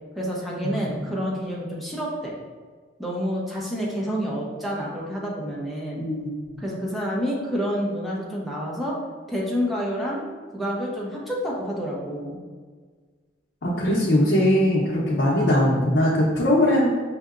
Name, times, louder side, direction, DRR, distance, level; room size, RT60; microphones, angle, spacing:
voice 1, 0.2-2.3 3.0-6.0 6.6-9.0 9.3-10.2 10.5-12.4, equal, ahead, -5 dB, 0.7 m, -28 dB
voice 2, 6.0-6.3 13.6-16.9, left 1 dB, 65° left, -6 dB, 0.7 m, -20 dB
5.6 x 2.7 x 2.4 m, 1.5 s
head